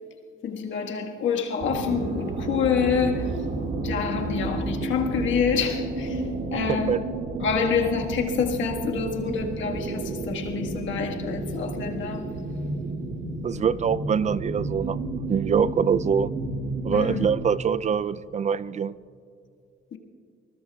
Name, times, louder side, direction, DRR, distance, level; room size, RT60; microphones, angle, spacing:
voice 1, 0.4-3.4 3.8-7.1 7.4-12.4 16.9-17.3 19.9-20.0, left 6 dB, 70° left, 1.6 m, -27 dB
sound 1, 1.6-17.5, right 2 dB, 65° right, 2.1 m, -31 dB
voice 2, 6.7-7.0 13.4-15.0 15.3-16.3 16.8-18.9, right 7 dB, 35° right, 0.4 m, -24 dB
24.0 x 20.5 x 2.3 m
cardioid pair, 90°, 20 cm